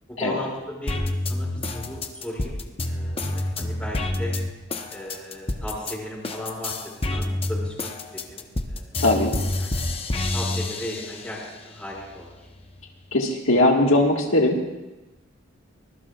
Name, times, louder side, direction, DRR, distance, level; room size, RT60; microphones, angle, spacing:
voice 1, 0.1-1.0 1.3-2.6 2.9-4.4 4.9-8.9 9.6-9.8 10.3-12.3, left 1 dB, 5° left, -4 dB, 6.0 m, -36 dB
sound 1, 0.9-5.9 6.2-11.4 11.9-12.9, left 2 dB, 30° left, 0.9 m, -28 dB
voice 2, 9.0-9.3 13.1-14.7, left 1 dB, 70° left, 0 dB, 1.8 m, -20 dB
24.0 x 21.0 x 2.4 m, 1.1 s
head